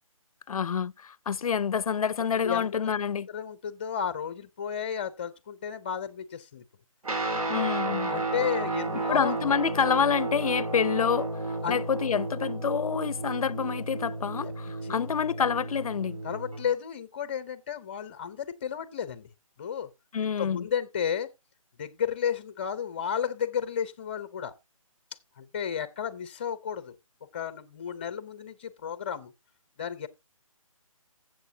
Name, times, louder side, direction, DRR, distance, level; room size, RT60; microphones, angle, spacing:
voice 1, 0.5-3.3 7.5-8.1 9.1-16.2 20.1-20.7, left 7 dB, 80° left, 0.4 m, -28 dB
voice 2, 2.4-2.9 3.3-6.6 8.0-9.3 11.6-11.8 14.4-14.5 14.8-15.1 16.2-19.3 19.6-19.9 20.4-21.3 21.8-24.5 25.4-27.0 27.3-29.3 29.8-30.1, left 8 dB, 20° left, 0.5 m, -33 dB
Guitar, 7.0-16.7, right 2 dB, 80° right, 2.3 m, -32 dB
14.5 x 7.7 x 2.7 m
hypercardioid pair, 165°, 18 cm